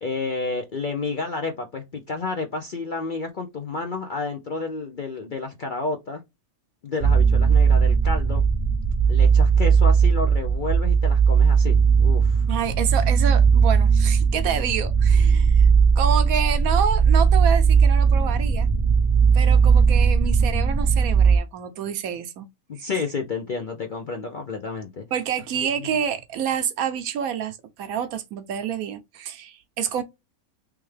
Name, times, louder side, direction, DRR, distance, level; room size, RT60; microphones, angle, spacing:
voice 1, 0.0-6.2 6.8-8.4 9.1-12.5 22.7-25.0, left 4 dB, 50° left, 0.6 m, -30 dB
sound 1, 7.0-21.4, right 6 dB, 35° right, 0.3 m, -18 dB
voice 2, 12.5-15.7 16.0-18.7 19.3-22.5 25.1-30.0, right 8 dB, 75° right, 1.1 m, -28 dB
3.4 x 3.2 x 3.2 m
omnidirectional pair, 1.6 m